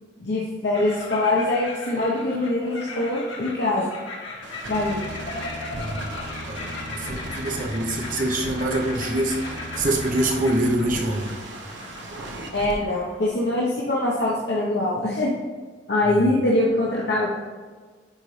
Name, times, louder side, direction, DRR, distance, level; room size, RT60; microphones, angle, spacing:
voice 1, 0.2-3.9 4.7-5.0 12.5-15.3 15.9-17.3, left 2 dB, 65° left, -5 dB, 1.0 m, -23 dB
sound 1, 0.7-13.3, left 3 dB, 85° left, 1.7 m, -38 dB
sound 2, 4.4-12.7, right 1 dB, 75° right, 1.0 m, -36 dB
voice 2, 5.7-6.1 6.5-11.4 16.0-16.3, right 1 dB, 45° right, 2 dB, 0.8 m, -25 dB
9.6 x 4.1 x 3.3 m, 1.5 s
head